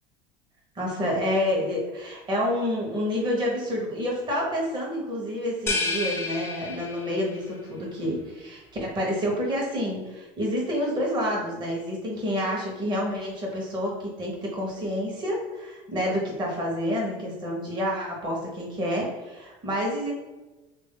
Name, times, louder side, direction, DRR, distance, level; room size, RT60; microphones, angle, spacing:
voice 1, 0.7-20.1, equal, 25° right, -3 dB, 0.9 m, -28 dB
sound 1, 5.7-7.4, left 3 dB, 15° left, 0.4 m, -30 dB
3.2 x 2.6 x 3.7 m, 1.1 s
cardioid pair, 135°, 17 cm